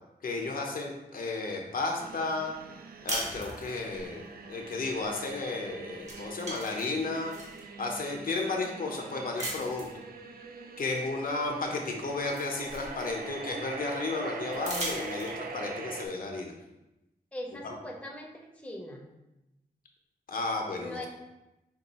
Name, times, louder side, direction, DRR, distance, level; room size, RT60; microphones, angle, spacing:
voice 1, 0.2-2.5 3.0-7.3 7.8-9.9 10.8-16.5 20.3-21.1, left 3 dB, 60° left, 2 dB, 0.6 m, -33 dB
sound 1, 2.0-16.1, right 4 dB, 70° right, 0.4 m, -43 dB
sound 2, 3.1-4.1 5.5-5.7 6.0-7.6 8.2-8.3 9.4-10.0 11.4-11.5 11.9-13.4 14.5-15.6, right 1 dB, 45° right, 1.4 m, -38 dB
voice 2, 17.3-19.1 20.8-21.1, left 1 dB, 5° left, 0 dB, 0.6 m, -41 dB
5.2 x 2.3 x 4.0 m, 0.97 s
wide cardioid pair, 145°, 16 cm